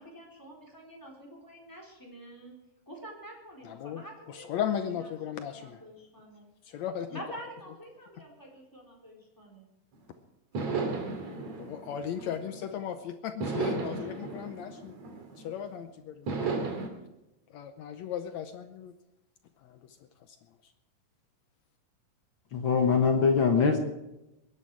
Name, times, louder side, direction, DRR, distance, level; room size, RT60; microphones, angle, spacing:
voice 1, 0.0-2.5 2.9-4.5 5.3-6.5 7.1-9.7, right 1 dB, 5° left, 0 dB, 3.6 m, -47 dB
voice 2, 3.6-5.8 6.6-7.2 11.6-14.9 15.4-16.3 17.5-18.9 19.6-20.4 20.6-20.7, left 9 dB, 75° left, 8 dB, 1.8 m, -36 dB
sound 1, 9.9-10.0 10.5-12.8 13.4-15.7 16.3-16.9, right 4 dB, 55° right, 3.3 m, -34 dB
voice 3, 22.5-23.8, left 5 dB, 55° left, 4 dB, 1.4 m, -23 dB
22.0 x 11.0 x 4.8 m, 0.94 s
omnidirectional pair, 3.8 m